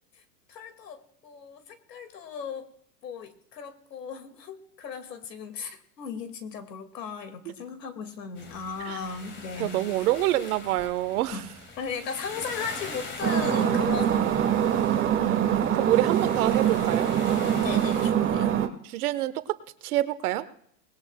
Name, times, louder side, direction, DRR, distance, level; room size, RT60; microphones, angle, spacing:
voice 1, 0.5-2.7 3.0-9.8 11.3-14.3 17.6-18.5, left 6 dB, 90° left, 8 dB, 2.2 m, -37 dB
sound 1, 8.4-18.1, left 3 dB, 25° left, 2.1 m, -43 dB
voice 2, 9.6-11.4 14.6-15.4 15.7-17.1 18.9-19.6 19.8-20.4, right 15 dB, 65° right, 13 dB, 1.2 m, -26 dB
sound 2, 13.2-18.7, right 9 dB, 25° right, 1.3 m, -24 dB
20.0 x 17.5 x 2.2 m, 0.65 s
hypercardioid pair, 120°, 48 cm